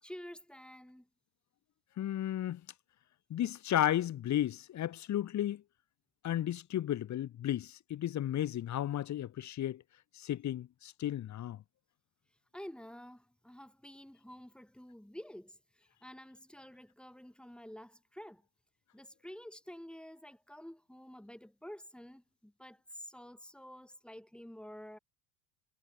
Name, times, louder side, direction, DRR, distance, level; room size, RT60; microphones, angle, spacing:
voice 1, 0.0-1.1 12.5-18.4 18.9-25.0, equal, ahead, 6.6 m, -50 dB
voice 2, 2.0-2.6 3.3-5.6 6.2-9.8 10.2-11.6, left 12 dB, 40° left, 1.8 m, -33 dB
supercardioid pair, 120°, 44 cm